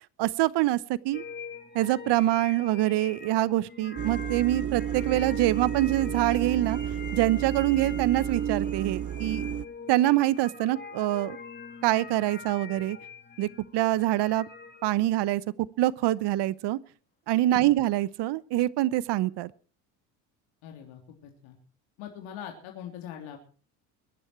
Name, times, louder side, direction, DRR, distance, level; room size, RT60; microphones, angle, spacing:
voice 1, 0.2-1.2 1.7-6.8 7.1-9.5 9.9-11.4 11.8-13.0 13.4-14.5 14.8-15.4 15.8-16.8 17.3-19.5, right 15 dB, 55° right, 1.0 m, -25 dB
sound 1, 1.1-14.9, left 5 dB, 20° left, 3.1 m, -44 dB
sound 2, 4.0-9.7, right 9 dB, 30° right, 0.7 m, -31 dB
voice 2, 20.6-21.6 22.0-23.4, left 9 dB, 70° left, 3.4 m, -42 dB
23.0 x 11.0 x 4.5 m
hypercardioid pair, 75°, 50 cm